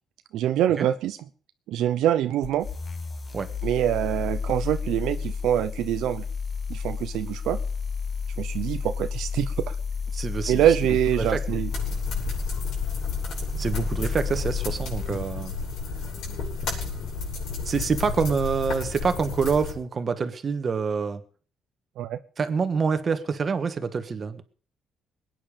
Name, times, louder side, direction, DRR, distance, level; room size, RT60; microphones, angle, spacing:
voice 1, 0.3-1.2 1.7-2.7 3.6-6.2 6.7-7.6 8.4-9.7 10.5-11.7 22.0-22.2, right 11 dB, 80° right, 10 dB, 0.8 m, -24 dB
sound 1, 2.4-15.1, left 5 dB, 30° left, 1.8 m, -31 dB
voice 2, 10.1-10.6 11.2-11.4 13.6-15.5 17.6-21.2 22.4-24.4, right 5 dB, 35° right, 9 dB, 1.6 m, -26 dB
sound 2, 11.7-19.7, left 4 dB, 70° left, 7.2 m, -32 dB
21.0 x 9.6 x 5.2 m, 0.43 s
cardioid pair, 105°, 0 cm